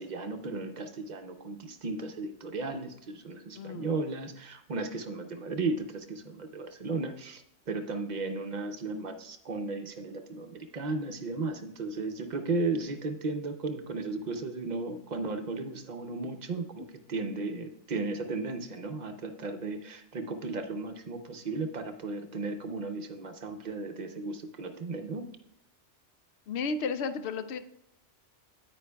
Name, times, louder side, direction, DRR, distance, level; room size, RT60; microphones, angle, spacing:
voice 1, 0.0-25.3, right 3 dB, 45° right, 7 dB, 0.6 m, -35 dB
voice 2, 3.5-4.0 16.8-16.9 26.5-27.6, left 4 dB, 65° left, 11 dB, 0.8 m, -33 dB
9.5 x 9.0 x 2.3 m, 0.76 s
omnidirectional pair, 1.3 m